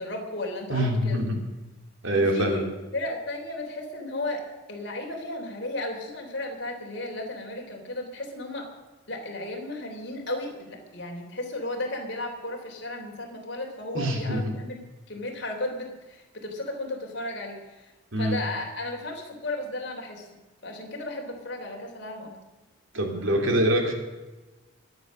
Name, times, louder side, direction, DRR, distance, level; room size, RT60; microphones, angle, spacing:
voice 1, 0.0-1.2 2.1-2.6 2.9-4.4 4.7-8.7 9.1-14.8 15.1-20.3 20.6-22.4, left 2 dB, 55° left, 1 dB, 3.4 m, -34 dB
voice 2, 0.7-1.4 2.0-2.6 13.9-14.6 18.1-18.4 22.9-23.9, right 1 dB, 70° right, 2 dB, 3.0 m, -24 dB
22.5 x 8.1 x 6.4 m, 1.2 s
head